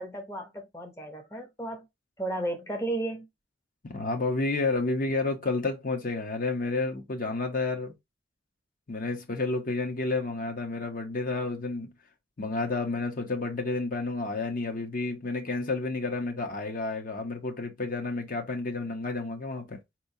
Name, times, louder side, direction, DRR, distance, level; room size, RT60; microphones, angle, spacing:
voice 1, 0.0-1.9 2.2-3.3, right 1 dB, 15° left, 0.8 m, -34 dB
voice 2, 3.8-7.9 8.9-11.9 12.4-19.8, left 3 dB, 45° left, 0.9 m, -30 dB
4.6 x 3.0 x 2.7 m
head